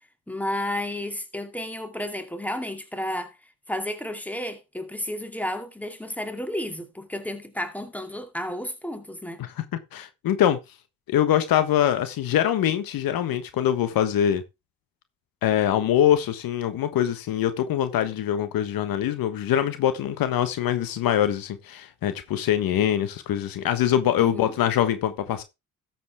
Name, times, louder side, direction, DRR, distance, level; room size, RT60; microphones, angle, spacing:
voice 1, 0.3-3.3 3.7-9.4 24.2-24.5, left 1 dB, 5° left, 2.4 m, -32 dB
voice 2, 9.9-10.6 11.1-14.4 15.4-25.4, left 10 dB, 75° left, 1.4 m, -23 dB
13.0 x 7.5 x 3.5 m
supercardioid pair, 65°, 35 cm